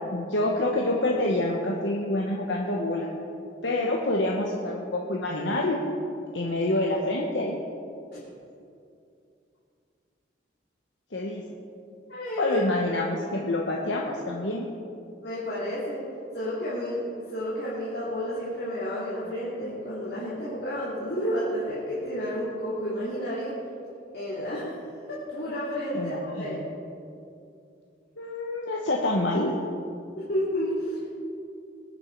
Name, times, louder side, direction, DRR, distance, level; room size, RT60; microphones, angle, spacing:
voice 1, 0.1-3.1 3.6-5.8 6.3-7.6 11.1-11.4 12.4-14.7 25.9-26.6 28.2-29.5, left 1 dB, 80° left, -1 dB, 1.1 m, -27 dB
voice 2, 12.1-12.6 15.2-16.0 16.3-17.0 17.3-23.5 24.1-24.7 25.1-26.6 30.2-31.1, equal, 60° left, -9 dB, 2.7 m, -31 dB
21.0 x 7.2 x 4.6 m, 2.5 s
head